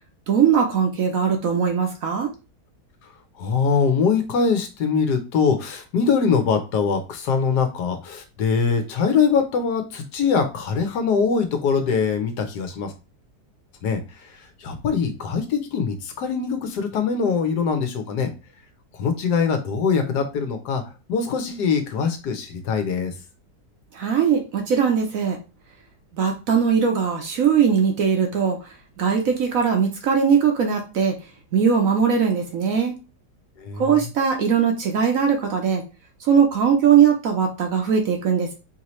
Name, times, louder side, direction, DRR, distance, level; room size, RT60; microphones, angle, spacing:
voice 1, 0.3-2.3 23.9-25.4 26.1-28.6 29.0-31.2 31.5-33.0 33.8-35.8 36.2-38.5, right 7 dB, 60° right, 3 dB, 1.0 m, -20 dB
voice 2, 3.4-12.9 13.8-14.3 14.6-18.3 18.9-20.8 21.1-23.1 33.6-33.8, left 5 dB, 70° left, 7 dB, 1.3 m, -23 dB
4.7 x 2.8 x 3.0 m, 0.29 s
omnidirectional pair, 1.9 m